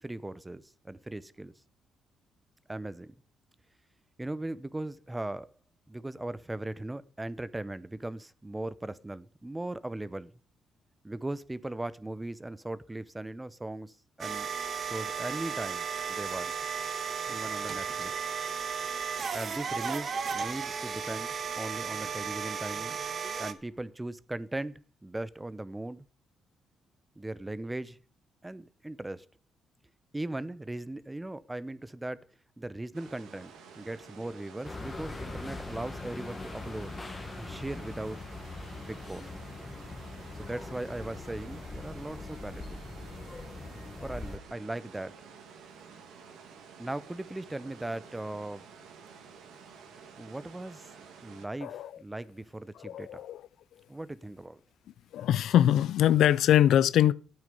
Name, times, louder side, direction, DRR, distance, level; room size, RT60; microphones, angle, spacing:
voice 1, 0.0-1.5 2.7-3.1 4.2-5.5 5.9-10.3 11.0-14.5 14.8-16.5 17.3-18.1 19.3-23.0 23.4-26.1 27.2-28.0 28.4-29.2 30.1-32.2 32.6-37.0 37.4-38.2 38.8-39.3 40.4-42.8 44.0-45.1 46.8-48.7 50.2-50.9 51.2-53.2 53.9-54.6, right 1 dB, 15° right, 0.8 m, -38 dB
sound 1, 14.2-23.5, right 6 dB, 50° right, 1.5 m, -34 dB
sound 2, 32.9-51.5, right 6 dB, 85° right, 2.6 m, -51 dB
sound 3, 34.6-44.4, left 3 dB, 25° left, 1.6 m, -42 dB
voice 2, 52.8-53.4 55.1-57.1, left 11 dB, 75° left, 0.5 m, -23 dB
12.5 x 9.1 x 5.3 m
cardioid pair, 90°, 0 cm